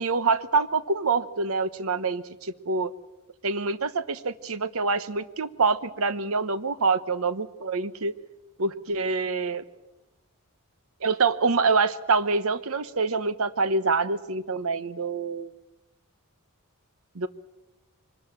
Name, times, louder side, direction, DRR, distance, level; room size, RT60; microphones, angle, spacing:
voice 1, 0.0-2.9 3.4-8.1 8.6-9.6 11.0-15.5 17.1-17.3, right 4 dB, 70° right, 13 dB, 1.0 m, -26 dB
24.5 x 20.5 x 7.4 m, 1.0 s
head